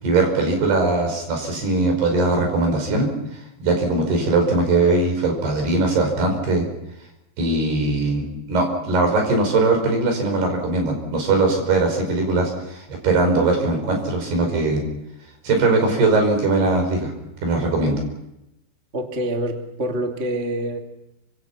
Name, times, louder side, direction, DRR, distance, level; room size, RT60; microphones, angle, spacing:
voice 1, 0.0-3.1 3.6-6.7 7.4-8.2 8.5-14.8 15.4-17.1 17.4-18.0, right 3 dB, 65° right, 3 dB, 7.2 m, -20 dB
voice 2, 18.9-20.8, right 1 dB, 25° right, 2 dB, 1.7 m, -26 dB
27.0 x 26.0 x 6.0 m, 0.89 s
omnidirectional pair, 5.1 m